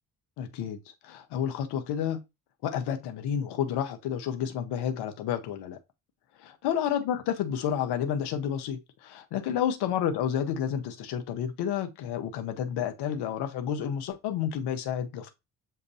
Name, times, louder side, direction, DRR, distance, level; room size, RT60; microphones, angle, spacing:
voice 1, 0.4-2.2 2.6-5.8 6.4-15.3, left 9 dB, 60° left, 1.0 m, -30 dB
7.4 x 2.6 x 2.7 m
figure-of-eight pair, 45°, 46 cm